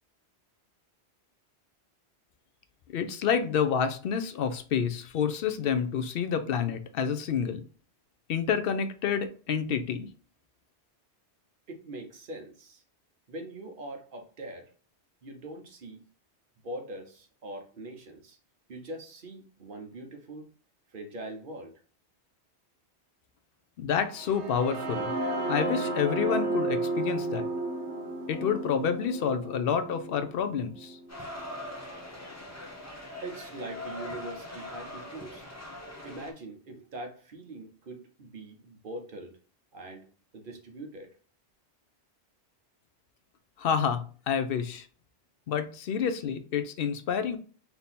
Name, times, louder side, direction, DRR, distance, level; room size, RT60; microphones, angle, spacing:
voice 1, 2.9-7.6 8.3-10.1 23.8-25.1 25.5-27.5 28.3-31.0 43.6-44.9 45.5-47.4, left 7 dB, 65° left, 10 dB, 0.7 m, -28 dB
voice 2, 11.7-12.8 13.3-14.7 15.2-16.0 16.6-18.4 18.7-20.4 20.9-21.7 33.2-35.4 36.0-39.3 39.7-40.1 40.3-41.1, right 1 dB, 55° right, 4 dB, 1.0 m, -42 dB
sound 1, 24.2-32.1, right 2 dB, 90° right, 1.2 m, -33 dB
sound 2, 31.1-36.3, left 1 dB, 15° left, 0.7 m, -42 dB
3.5 x 2.8 x 4.0 m, 0.40 s
omnidirectional pair, 1.1 m